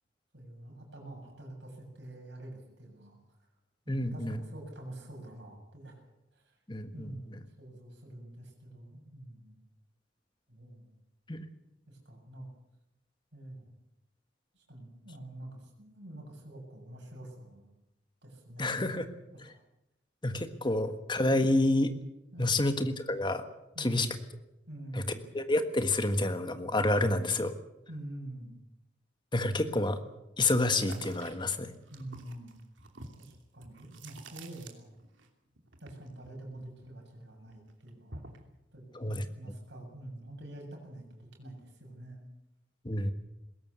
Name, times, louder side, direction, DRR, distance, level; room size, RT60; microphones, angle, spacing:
voice 1, 0.3-3.2 3.9-6.0 6.3-6.6 6.9-9.6 10.5-11.0 11.9-12.5 13.3-13.7 14.5-17.7 18.2-18.8 19.3-19.6 22.3-22.6 23.7-24.1 24.7-25.3 27.9-28.6 31.9-32.6 33.2-34.9 35.8-38.2 38.7-42.2, right 1 dB, 65° right, 1 dB, 7.3 m, -46 dB
voice 2, 3.9-4.4 6.7-7.4 11.3-11.4 18.6-19.1 20.2-21.9 22.4-23.4 23.8-24.2 24.9-25.0 25.3-27.5 29.3-30.0 30.4-31.7 38.9-39.2 42.8-43.1, left 2 dB, 25° left, 9 dB, 1.6 m, -29 dB
sound 1, 30.7-35.3 35.5-37.2 37.5-38.5, right 2 dB, 85° right, 2.9 m, -49 dB
21.0 x 17.5 x 8.2 m, 0.89 s
head